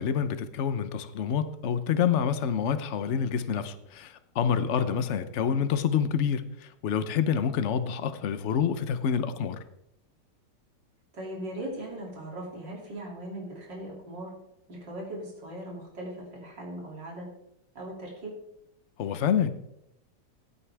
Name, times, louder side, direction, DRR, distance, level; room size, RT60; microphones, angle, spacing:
voice 1, 0.0-9.6 19.0-19.6, left 7 dB, 55° left, 11 dB, 0.9 m, -27 dB
voice 2, 11.1-14.3 14.7-17.3 17.8-18.3, right 1 dB, 85° right, -2 dB, 3.6 m, -39 dB
16.5 x 8.4 x 3.4 m, 0.80 s
omnidirectional pair, 1.9 m